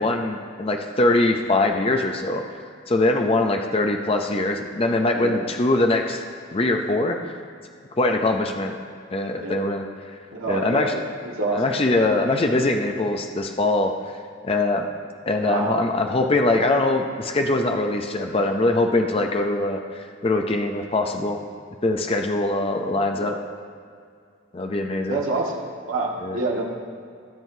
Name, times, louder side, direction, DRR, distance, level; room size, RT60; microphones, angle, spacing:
voice 1, 0.0-2.4 2.9-6.2 6.5-7.2 8.0-8.8 9.1-9.8 10.5-11.0 11.5-13.9 14.4-14.9 15.3-21.4 21.8-23.4 24.5-25.2 26.2-26.4, left 2 dB, 25° left, 4 dB, 0.5 m, -22 dB
voice 2, 5.1-5.5 9.4-9.7 10.3-11.0 11.2-11.6 15.4-15.8 23.2-23.3 25.0-25.6 25.9-26.6, right 2 dB, 80° right, -1 dB, 1.6 m, -27 dB
17.5 x 7.7 x 2.7 m, 2.2 s
head